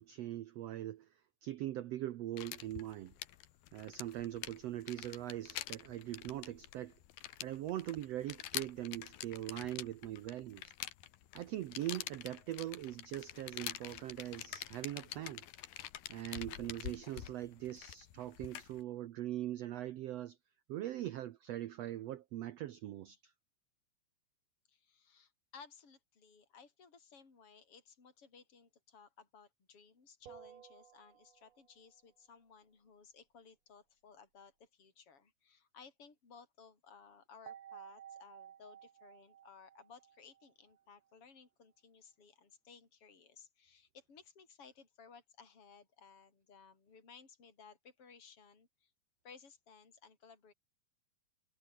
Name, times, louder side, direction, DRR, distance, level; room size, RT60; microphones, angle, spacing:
voice 1, 0.0-3.1 3.7-7.0 7.4-10.7 11.3-15.4 16.1-20.4 20.7-23.3, right 13 dB, 85° right, 1.4 m, -42 dB
sound 1, 2.4-18.8, left 13 dB, 85° left, 3.2 m, -46 dB
voice 2, 24.7-48.9 49.2-50.5, left 6 dB, 40° left, 6.0 m, -59 dB
sound 2, 30.2-31.8 37.5-40.8, right 10 dB, 55° right, 2.5 m, -55 dB
omnidirectional pair, 4.0 m